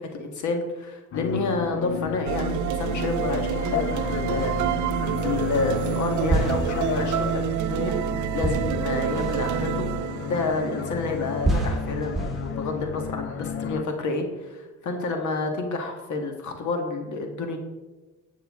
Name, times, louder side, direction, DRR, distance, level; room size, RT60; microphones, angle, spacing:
voice 1, 0.0-7.9 8.3-9.9 10.2-17.6, left 3 dB, 70° left, 4 dB, 1.7 m, -29 dB
sound 1, 1.1-13.8, left 8 dB, 45° left, 0.6 m, -33 dB
sound 2, 2.3-12.4, right 11 dB, 75° right, 0.6 m, -29 dB
sound 3, 2.8-3.5 4.4-5.2 6.3-10.8 11.4-13.4, right 1 dB, ahead, 3.3 m, -31 dB
12.0 x 8.3 x 3.6 m, 1.1 s
cardioid pair, 90°, 30 cm